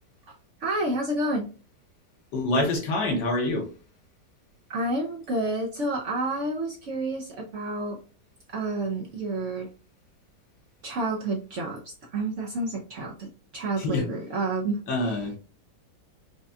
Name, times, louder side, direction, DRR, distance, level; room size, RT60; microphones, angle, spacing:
voice 1, 0.6-1.5 4.7-8.0 8.5-9.7 10.8-11.8 12.1-13.3 13.5-14.8, right 2 dB, 60° right, 0.8 m, -29 dB
voice 2, 2.3-3.7 13.8-14.1 14.9-15.4, left 2 dB, 85° left, 1.7 m, -26 dB
4.7 x 2.3 x 2.6 m
omnidirectional pair, 1.9 m